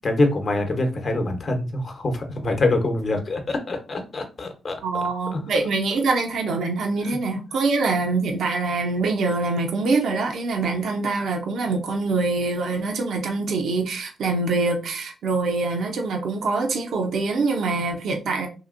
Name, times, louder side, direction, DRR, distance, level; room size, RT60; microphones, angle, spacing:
voice 1, 0.0-4.8 5.3-5.4, left 2 dB, 50° left, 0.9 m, -24 dB
voice 2, 4.8-18.5, right 3 dB, 75° right, 0.6 m, -24 dB
2.8 x 2.8 x 2.5 m
supercardioid pair, 60°, 0 cm